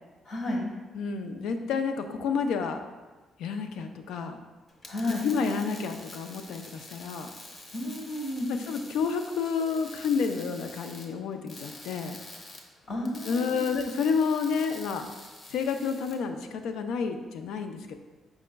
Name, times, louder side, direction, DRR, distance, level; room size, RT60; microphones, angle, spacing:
voice 1, 0.2-0.6 4.9-5.2 7.7-8.5 12.9-13.7, left 1 dB, 70° left, -2 dB, 1.4 m, -32 dB
voice 2, 0.9-2.8 3.4-4.4 5.1-7.3 8.5-12.2 13.3-15.0 15.5-17.9, left 5 dB, 85° left, 6 dB, 0.4 m, -30 dB
sound 1, 4.7-16.2, left 2 dB, 40° left, 0.9 m, -47 dB
5.1 x 4.7 x 2.2 m, 1.3 s
cardioid pair, 90°, 0 cm